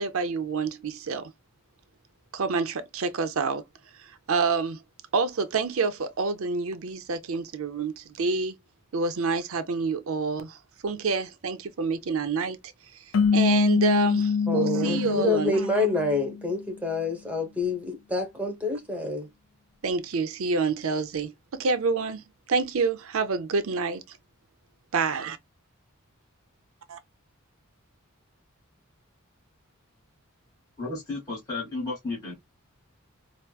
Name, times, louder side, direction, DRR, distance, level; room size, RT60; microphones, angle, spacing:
voice 1, 0.0-1.3 2.3-3.6 4.3-4.8 5.1-8.5 8.9-10.6 10.8-12.6 13.3-15.9 19.8-24.2 24.9-25.4 26.9-27.0, right 4 dB, 70° right, 0.6 m, -28 dB
sound 1, 13.1-16.5, left 6 dB, 65° left, 0.4 m, -24 dB
voice 2, 14.5-19.3, left 2 dB, 5° right, 0.9 m, -27 dB
voice 3, 30.8-32.3, left 3 dB, 15° left, 1.3 m, -33 dB
4.4 x 2.0 x 2.3 m
head